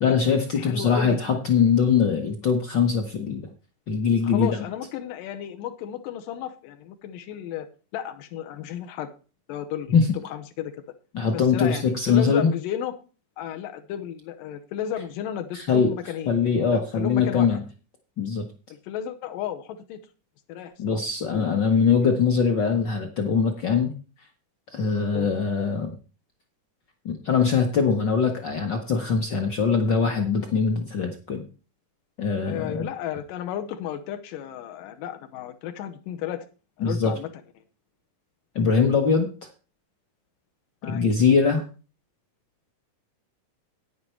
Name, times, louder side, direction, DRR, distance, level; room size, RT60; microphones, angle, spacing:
voice 1, 0.0-3.5 3.9-4.6 9.9-10.1 11.1-12.5 15.5-15.9 16.3-17.6 18.2-18.4 20.8-23.9 24.7-25.9 27.0-31.4 32.2-32.8 36.8-37.1 38.5-39.3 40.8-41.6, left 5 dB, 70° left, 5 dB, 1.0 m, -22 dB
voice 2, 0.6-1.2 4.2-7.7 7.9-9.1 9.5-9.9 10.2-10.7 11.3-13.0 13.4-16.3 16.7-17.6 18.8-20.0 20.5-21.0 21.3-21.5 25.1-25.3 32.5-36.5 36.8-37.3 40.8-41.0, left 10 dB, 85° left, 6 dB, 2.5 m, -33 dB
9.6 x 9.5 x 4.4 m, 0.34 s
omnidirectional pair, 3.8 m